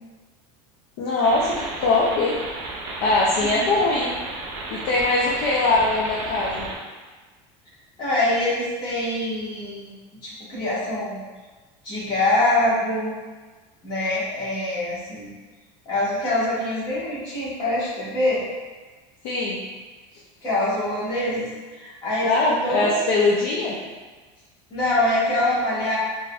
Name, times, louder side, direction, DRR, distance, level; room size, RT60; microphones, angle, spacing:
voice 1, 1.0-2.4 3.0-4.1 4.7-6.7 19.2-19.6 22.2-23.8, left 2 dB, 50° left, -5 dB, 0.5 m, -21 dB
sound 1, 1.2-6.8, right 2 dB, 45° right, 0.6 m, -34 dB
voice 2, 8.0-9.9 10.2-11.2 11.8-13.1 13.8-15.3 15.8-18.4 20.4-21.5 21.7-22.9 24.7-26.0, left 1 dB, 30° left, -8 dB, 1.3 m, -24 dB
4.8 x 2.6 x 2.3 m, 1.3 s
cardioid pair, 175°, 15 cm